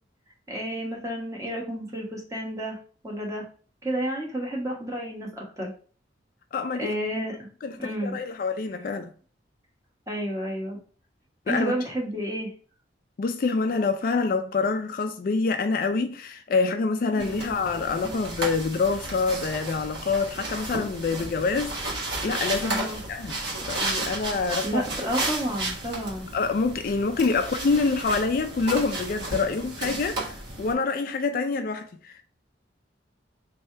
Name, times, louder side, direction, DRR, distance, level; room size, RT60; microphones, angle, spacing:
voice 1, 0.5-2.8 3.0-3.4 3.8-5.7 6.8-7.4 7.8-8.2 10.1-10.8 11.5-12.5 17.1-17.6 22.6-23.0 24.6-26.3, right 1 dB, 15° right, 1.1 m, -31 dB
voice 2, 6.5-6.9 7.6-9.1 11.5-11.7 13.2-23.4 23.7-24.8 26.3-32.2, left 4 dB, 50° left, 0.3 m, -26 dB
sound 1, 17.2-30.7, right 2 dB, 70° right, 1.4 m, -33 dB
3.2 x 2.7 x 4.4 m
head